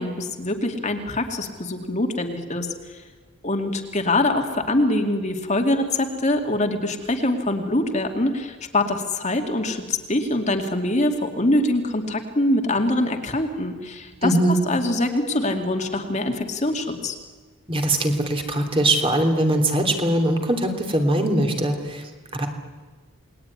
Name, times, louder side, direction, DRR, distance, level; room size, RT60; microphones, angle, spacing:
voice 1, 0.0-3.0 3.4-14.3 14.7-17.2, left 1 dB, 35° left, 4 dB, 2.4 m, -24 dB
voice 2, 14.2-14.6 17.7-22.5, right 1 dB, 25° right, 4 dB, 3.0 m, -21 dB
29.0 x 20.5 x 9.8 m, 1.4 s
head